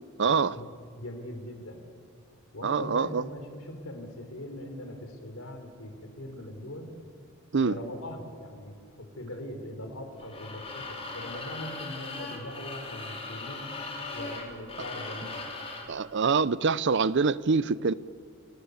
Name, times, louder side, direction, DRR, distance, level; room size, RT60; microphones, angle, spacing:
voice 1, 0.2-0.6 2.6-3.2 7.5-7.8 15.9-17.9, right 5 dB, 60° right, 0.6 m, -25 dB
voice 2, 1.0-1.8 2.5-6.9 7.6-13.7 14.1-15.4, left 1 dB, 75° left, 4.4 m, -40 dB
sound 1, 10.2-16.0, left 3 dB, 30° left, 4.3 m, -39 dB
29.5 x 17.5 x 8.2 m
head